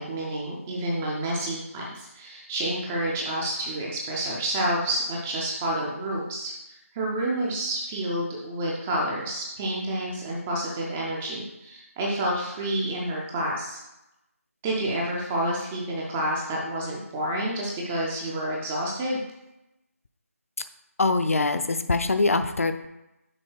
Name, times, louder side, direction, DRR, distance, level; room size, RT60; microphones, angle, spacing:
voice 1, 0.0-6.5 6.9-13.8 14.6-19.2, right 1 dB, 5° right, -3 dB, 0.3 m, -29 dB
voice 2, 21.0-22.9, left 3 dB, 65° left, 9 dB, 0.5 m, -23 dB
6.3 x 4.2 x 4.6 m, 0.91 s
figure-of-eight pair, 165°, 8 cm